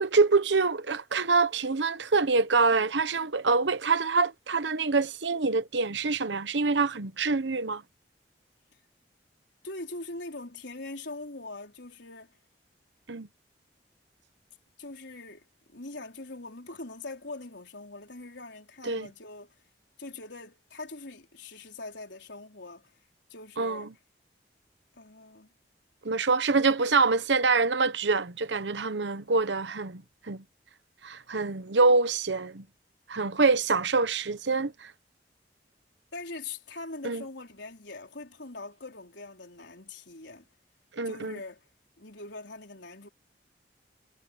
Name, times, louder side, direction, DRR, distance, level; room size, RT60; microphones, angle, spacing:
voice 1, 0.0-7.8 13.1-13.3 18.8-19.1 23.6-23.9 26.0-30.4 31.0-32.6 33.1-34.9 37.0-37.2 40.9-41.4, right 4 dB, 85° right, 1.0 m, -25 dB
voice 2, 9.6-12.3 14.8-19.6 20.0-22.9 23.3-23.9 25.0-25.5 36.1-40.5 41.0-41.7 42.0-43.1, left 2 dB, 85° left, 4.3 m, -42 dB
head